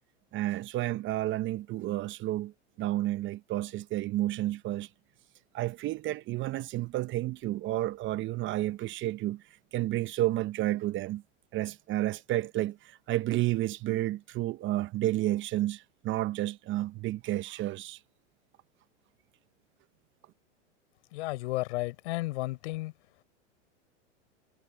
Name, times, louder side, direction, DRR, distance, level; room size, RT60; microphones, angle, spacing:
voice 1, 0.3-2.5 2.8-4.9 5.5-9.4 9.7-11.2 11.5-18.0, right 15 dB, 30° right, 0.8 m, -31 dB
voice 2, 21.1-22.9, left 20 dB, 65° left, 4.5 m, -33 dB
hypercardioid pair, 115°, 36 cm